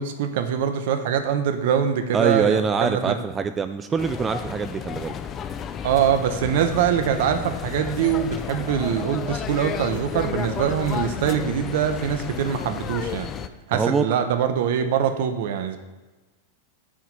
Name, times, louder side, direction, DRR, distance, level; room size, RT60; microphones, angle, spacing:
voice 1, 0.0-3.2 5.8-13.3 13.7-15.8, right 8 dB, 65° right, 8 dB, 0.9 m, -23 dB
voice 2, 2.1-5.1 13.7-14.1, right 5 dB, 20° right, 10 dB, 0.4 m, -24 dB
Street London Traffic People busy no eq, 4.0-13.5, left 8 dB, 30° left, 0.6 m, -32 dB
8.7 x 4.8 x 5.4 m, 1.2 s
hypercardioid pair, 110°, 0 cm